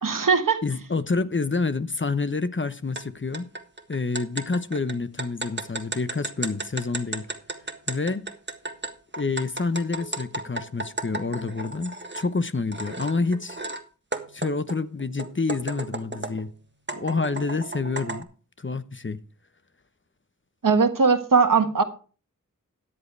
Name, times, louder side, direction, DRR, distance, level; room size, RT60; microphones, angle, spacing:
voice 1, 0.0-0.6 20.6-21.8, right 5 dB, 80° right, 1.5 m, -19 dB
voice 2, 0.6-3.5 3.9-7.3 7.9-8.3 9.2-13.6 14.3-16.5 16.9-18.3 18.6-19.2, left 3 dB, 35° left, 0.9 m, -28 dB
sound 1, 3.0-3.1 3.3-12.3 12.7-13.8 14.1-16.5 16.9-18.2, right 2 dB, 35° right, 1.5 m, -34 dB
13.5 x 9.7 x 3.4 m
wide cardioid pair, 55°, 32 cm